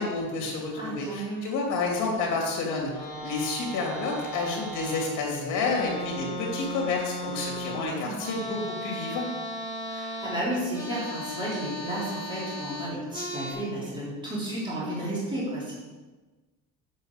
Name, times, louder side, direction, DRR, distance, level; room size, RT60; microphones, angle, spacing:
voice 1, 0.0-2.9 3.2-9.3, left 3 dB, 60° left, -1 dB, 3.0 m, -29 dB
voice 2, 0.7-1.4 7.8-8.7 9.9-15.7, right 1 dB, 15° right, -8 dB, 3.3 m, -33 dB
sound 1, 2.8-5.2 5.5-13.5, equal, 10° left, 3.8 m, -36 dB
8.7 x 6.6 x 6.7 m, 1.3 s
cardioid pair, 175°, 34 cm